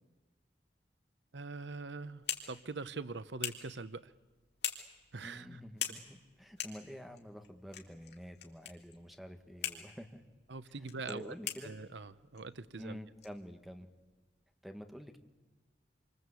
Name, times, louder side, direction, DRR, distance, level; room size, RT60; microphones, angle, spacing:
voice 1, 1.3-4.1 5.1-5.6 10.5-11.4 11.6-13.0, right 3 dB, 85° right, 14 dB, 0.9 m, -43 dB
sound 1, 1.7-14.1, left 9 dB, 65° left, 3.5 m, -45 dB
voice 2, 5.2-10.2 11.1-11.7 12.8-13.9 14.6-15.2, equal, ahead, 5 dB, 1.8 m, -48 dB
28.0 x 25.0 x 8.3 m, 1.2 s
head